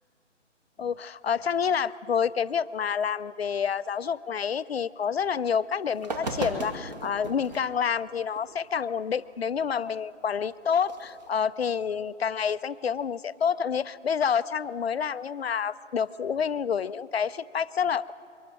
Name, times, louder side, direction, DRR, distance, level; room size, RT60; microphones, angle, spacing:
voice 1, 0.8-18.1, left 7 dB, 55° left, 16 dB, 0.5 m, -28 dB
sound 1, 5.5-5.6 5.9-7.7 8.4-8.5 10.8-11.3, right 2 dB, 35° right, 1.8 m, -35 dB
23.0 x 15.0 x 9.1 m, 2.7 s
hypercardioid pair, 165°, 37 cm